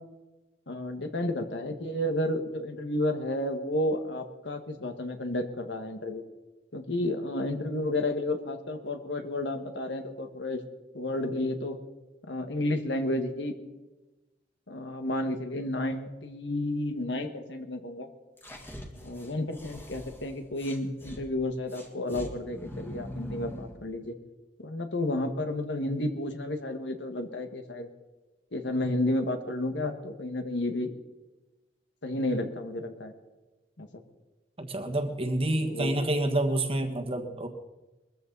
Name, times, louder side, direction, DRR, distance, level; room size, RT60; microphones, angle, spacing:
voice 1, 0.7-6.2 6.7-10.6 10.9-11.8 12.3-13.5 14.7-18.1 19.0-24.2 24.6-27.9 28.5-30.9 32.0-33.1 33.8-33.9 35.6-36.0, left 1 dB, 75° left, 6 dB, 1.7 m, -31 dB
sound 1, 18.4-21.2 21.7-23.8, equal, 15° left, 2.0 m, -42 dB
voice 2, 34.6-37.5, right 1 dB, 30° right, 6 dB, 1.5 m, -28 dB
22.0 x 14.0 x 4.1 m, 1.1 s
head